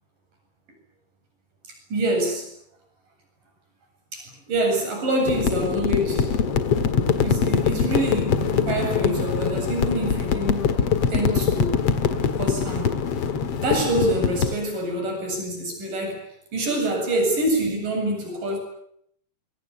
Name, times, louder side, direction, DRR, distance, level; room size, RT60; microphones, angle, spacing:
voice 1, 1.9-2.5 4.1-6.3 7.2-10.7 11.1-11.8 12.3-13.1 13.6-16.2 16.5-18.6, right 1 dB, 90° right, 3 dB, 9.7 m, -26 dB
sound 1, 5.3-14.5, left 6 dB, 55° left, 2.5 m, -23 dB
26.0 x 23.0 x 8.7 m, 0.69 s
omnidirectional pair, 3.7 m